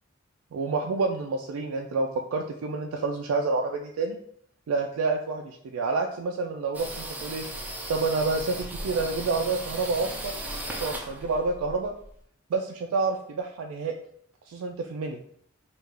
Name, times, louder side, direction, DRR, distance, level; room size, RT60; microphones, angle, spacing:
voice 1, 0.5-4.2 4.7-7.4 7.9-10.3 10.7-11.9 12.5-13.9 14.5-15.2, right 3 dB, 85° right, 2 dB, 0.3 m, -28 dB
sound 1, 6.7-12.2, right 1 dB, 10° right, 0.3 m, -37 dB
3.5 x 2.4 x 3.2 m, 0.66 s
head